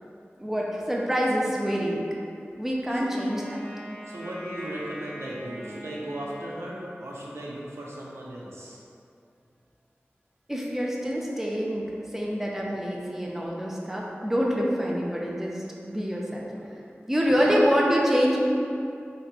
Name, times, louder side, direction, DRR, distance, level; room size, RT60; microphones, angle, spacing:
voice 1, 0.4-2.0 2.6-3.6 10.5-11.9 12.1-16.5 17.1-18.4, equal, 10° right, -3 dB, 0.7 m, -26 dB
Wind instrument woodwind instrument, 3.1-7.3, equal, 30° left, 0.9 m, -43 dB
voice 2, 4.1-8.8 17.3-17.6, right 1 dB, 85° right, -4 dB, 0.7 m, -36 dB
3.8 x 2.9 x 4.6 m, 2.5 s
wide cardioid pair, 45°, 4 cm